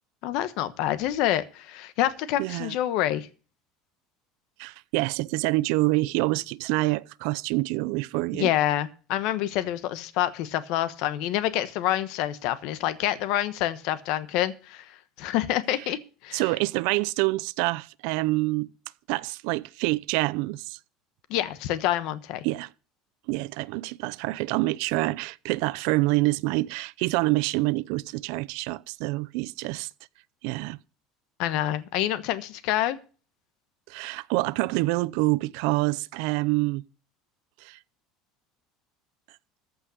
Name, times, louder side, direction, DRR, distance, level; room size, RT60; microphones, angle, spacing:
voice 1, 0.2-3.3 8.3-16.4 21.3-22.4 31.4-33.0, left 13 dB, 65° left, 1.2 m, -27 dB
voice 2, 2.4-2.7 4.6-8.5 16.3-18.7 19.1-20.8 22.4-22.7 23.3-29.9 30.4-30.8 33.9-36.8 37.6-37.8, right 22 dB, 70° right, 0.5 m, -26 dB
14.5 x 5.5 x 8.3 m
cardioid pair, 150°, 0 cm